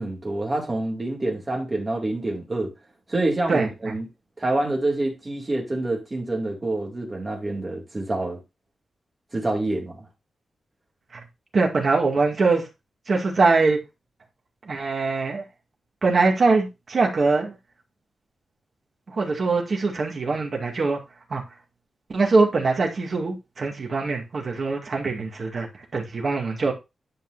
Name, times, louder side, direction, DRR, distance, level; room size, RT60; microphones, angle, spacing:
voice 1, 0.0-2.7 3.1-4.0 4.4-8.4 9.3-10.1, right 2 dB, 20° right, 2.4 m, -27 dB
voice 2, 3.5-3.9 11.1-11.2 11.5-12.7 13.1-13.8 14.7-15.4 16.0-17.6 19.1-21.0 21.3-21.4 22.1-26.7, right 3 dB, 40° right, 2.0 m, -22 dB
10.5 x 5.4 x 2.6 m
wide cardioid pair, 170°, 0 cm